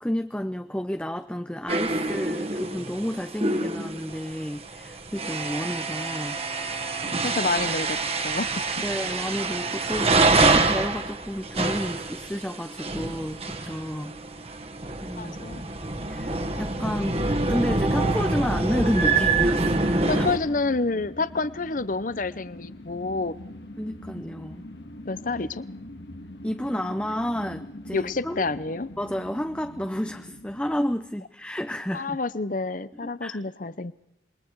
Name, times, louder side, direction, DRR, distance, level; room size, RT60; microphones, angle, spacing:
voice 1, 0.0-6.9 8.8-14.1 15.0-15.4 16.1-20.3 23.8-24.7 26.4-28.4 29.0-32.2 33.0-33.4, equal, 5° left, 8 dB, 0.7 m, -31 dB
sound 1, 1.7-20.4, right 3 dB, 35° right, 1.7 m, -26 dB
voice 2, 7.0-8.0 8.2-8.6 15.2-15.6 20.1-23.3 25.0-25.6 27.9-28.9 31.9-33.9, left 3 dB, 45° left, 15 dB, 0.8 m, -28 dB
sound 2, 18.7-31.0, left 1 dB, 70° left, 2.1 m, -42 dB
27.0 x 22.5 x 4.8 m, 0.78 s
head